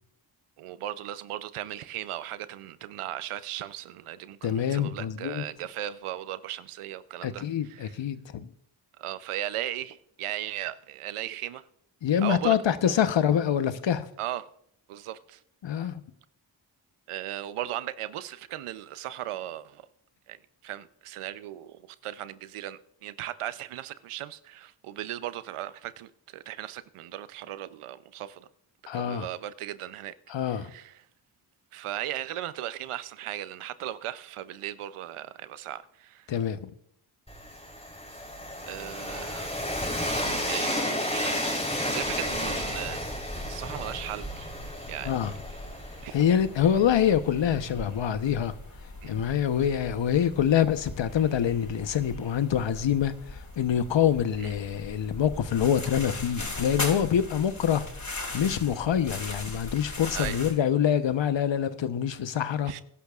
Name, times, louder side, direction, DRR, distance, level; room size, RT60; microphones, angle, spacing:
voice 1, 0.6-7.9 9.0-11.7 12.2-12.9 14.2-14.5 14.9-15.4 17.1-19.9 20.3-20.4 20.6-28.5 28.9-30.1 30.5-31.0 31.7-36.3 38.6-39.5 40.5-43.1 43.5-44.5 44.9-45.2 46.0-46.2 49.0-49.2 54.4-54.5 60.1-60.4 62.7-62.8, right 12 dB, 80° right, 0.7 m, -37 dB
voice 2, 4.4-5.4 7.2-8.5 12.0-14.1 15.6-16.0 28.9-29.3 30.3-30.7 36.3-36.7 45.0-45.3 46.1-48.5 49.0-57.9 58.3-62.7, left 9 dB, 60° left, 1.0 m, -25 dB
Train, 37.3-47.1, equal, 10° left, 3.8 m, -32 dB
sound 1, 42.0-60.5, left 2 dB, 40° left, 4.9 m, -40 dB
21.0 x 11.5 x 2.4 m
supercardioid pair, 40°, 50 cm